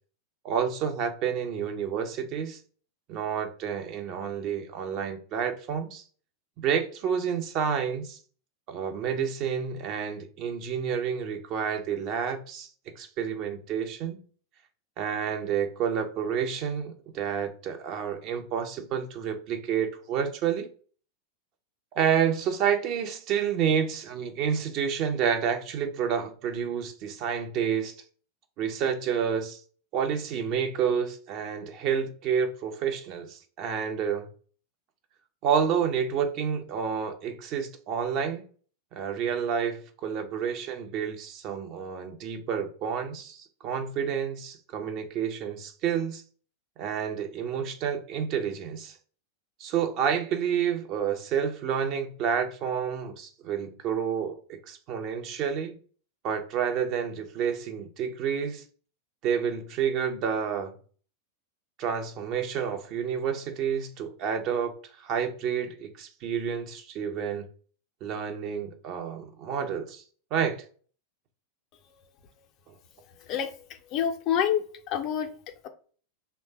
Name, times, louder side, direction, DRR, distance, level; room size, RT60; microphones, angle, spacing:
voice 1, 0.4-2.6 3.1-6.0 6.6-8.2 8.7-12.7 13.0-14.2 15.0-20.7 21.9-27.9 28.6-29.6 29.9-34.3 35.4-38.4 39.0-46.2 46.8-49.0 49.6-55.8 56.2-58.6 59.2-60.7 61.8-64.7 65.0-67.4 68.0-70.0 70.3-70.7, right 7 dB, 40° right, 0.6 m, -29 dB
voice 2, 73.9-75.3, left 9 dB, 35° left, 0.5 m, -27 dB
3.2 x 2.1 x 4.1 m
figure-of-eight pair, 90°, 0 cm